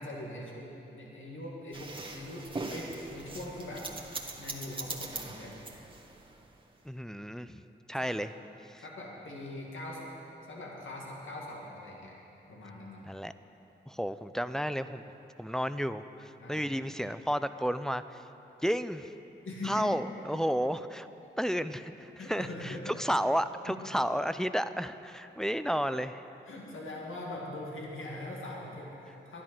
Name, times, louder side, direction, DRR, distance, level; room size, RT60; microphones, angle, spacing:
voice 1, 0.0-3.9 4.4-5.5 7.9-8.1 8.8-10.1 10.4-12.2 12.5-13.0 16.4-16.6 19.4-19.9 22.2-23.0 23.7-24.0 26.5-29.4, left 1 dB, 80° left, -2 dB, 2.1 m, -42 dB
sound 1, 1.7-6.5, right 2 dB, 25° right, 1.4 m, -41 dB
voice 2, 6.8-7.5 7.9-8.3 8.7-8.8 13.1-13.3 13.9-15.0 15.4-18.2 18.6-19.1 19.6-21.1 21.4-26.2, equal, 5° left, 11 dB, 0.5 m, -32 dB
11.0 x 11.0 x 6.1 m, 2.9 s
supercardioid pair, 40°, 20 cm